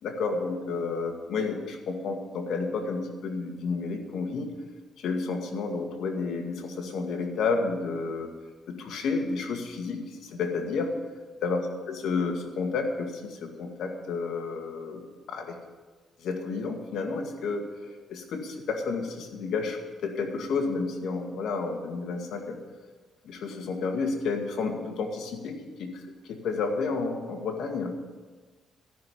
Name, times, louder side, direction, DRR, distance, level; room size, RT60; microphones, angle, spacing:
voice 1, 0.0-4.5 5.0-8.3 8.7-10.9 11.4-15.0 15.3-15.6 16.2-22.6 23.3-25.9 26.3-28.0, left 4 dB, 75° left, 3 dB, 2.0 m, -31 dB
13.5 x 6.4 x 9.7 m, 1.4 s
cardioid pair, 90°, 0 cm